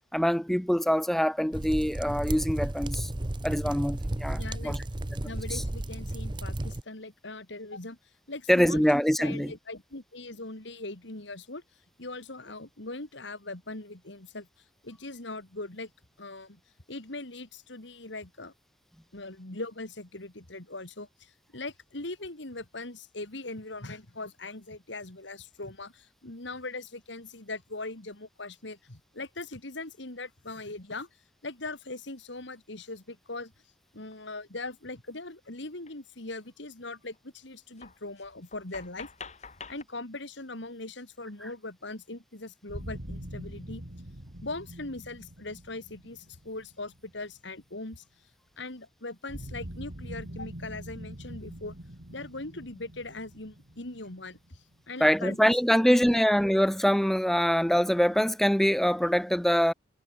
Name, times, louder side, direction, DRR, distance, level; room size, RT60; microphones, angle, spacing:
voice 1, 0.1-3.1 3.4-4.8 5.2-5.6 8.5-9.5 55.0-59.7, equal, ahead, 0.4 m, -24 dB
sound 1, 1.5-6.8, right 1 dB, 25° right, 0.8 m, -33 dB
voice 2, 4.3-4.8 5.2-8.0 8.3-11.6 12.0-14.5 14.8-15.9 16.2-16.6 16.9-18.5 19.1-31.1 31.4-33.5 33.9-39.1 39.7-43.8 44.4-48.0 48.6-51.7 52.1-56.3, left 2 dB, 70° left, 2.7 m, -40 dB
sound 2, 34.1-34.2 35.9-36.0 36.2-36.5 37.1-37.2 37.8-39.8, left 5 dB, 35° left, 1.8 m, -47 dB
sound 3, 42.7-47.6 49.3-54.9, right 1 dB, 60° right, 3.1 m, -43 dB
head